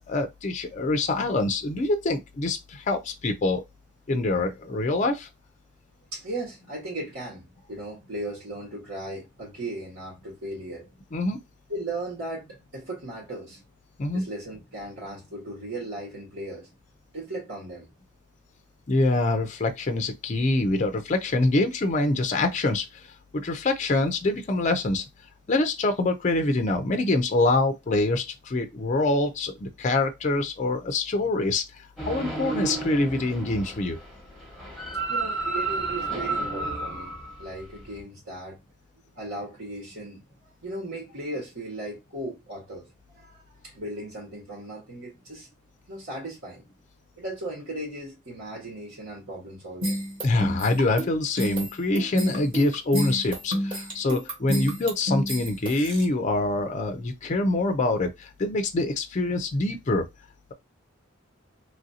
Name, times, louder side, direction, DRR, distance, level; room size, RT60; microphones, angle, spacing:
voice 1, 0.1-3.6 4.1-5.3 11.1-11.4 14.0-14.3 18.9-23.1 23.3-25.0 25.5-31.6 32.1-34.0 50.2-60.1, left 2 dB, 35° left, 0.4 m, -25 dB
voice 2, 6.1-10.9 11.7-13.6 14.1-16.7 17.1-17.9 35.1-38.6 39.2-42.9 43.1-45.5 45.9-46.6 47.2-50.0, right 1 dB, 70° right, 1.5 m, -37 dB
sound 1, 32.0-38.0, right 3 dB, ahead, 1.0 m, -32 dB
sound 2, 49.8-56.0, equal, 25° right, 1.2 m, -30 dB
3.1 x 2.6 x 2.7 m
head